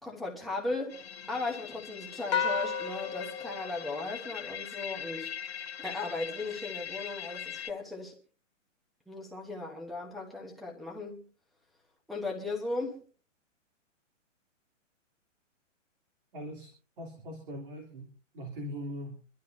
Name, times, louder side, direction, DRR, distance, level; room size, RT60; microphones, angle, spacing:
voice 1, 0.0-1.0 1.3-5.3 5.8-8.1 9.1-11.2 12.1-13.0, left 3 dB, ahead, 1.1 m, -37 dB
sound 1, 0.9-7.7, left 8 dB, 55° left, 1.1 m, -42 dB
sound 2, 2.3-4.8, left 6 dB, 25° left, 0.9 m, -34 dB
voice 2, 16.3-16.7 17.0-19.2, equal, 45° right, 3.0 m, -41 dB
26.0 x 12.0 x 2.7 m
hypercardioid pair, 170°, 38 cm